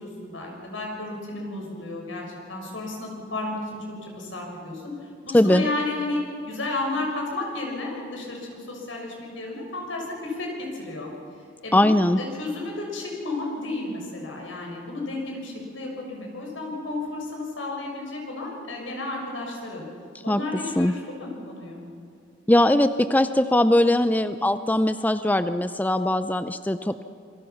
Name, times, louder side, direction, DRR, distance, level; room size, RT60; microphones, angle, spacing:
voice 1, 0.0-6.2 6.5-8.4 8.7-11.1 11.6-19.8 20.2-21.8, left 2 dB, 80° left, 0 dB, 6.4 m, -32 dB
voice 2, 11.7-12.2 20.3-20.4 20.8-20.9 22.5-27.0, left 1 dB, 10° left, 11 dB, 0.4 m, -20 dB
27.0 x 22.5 x 5.9 m, 2.4 s
head